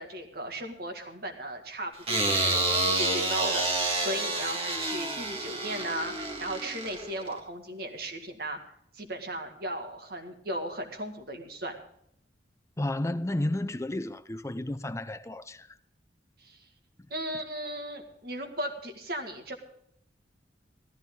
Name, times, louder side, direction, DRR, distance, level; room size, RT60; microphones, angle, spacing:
voice 1, 0.0-8.6 8.9-11.8 16.4-16.7 17.1-19.5, right 1 dB, 55° right, 2.0 m, -36 dB
sound 1, 2.1-7.4, right 2 dB, 30° right, 1.8 m, -29 dB
voice 2, 12.8-15.8, left 1 dB, 15° left, 0.5 m, -32 dB
15.5 x 14.0 x 3.8 m
head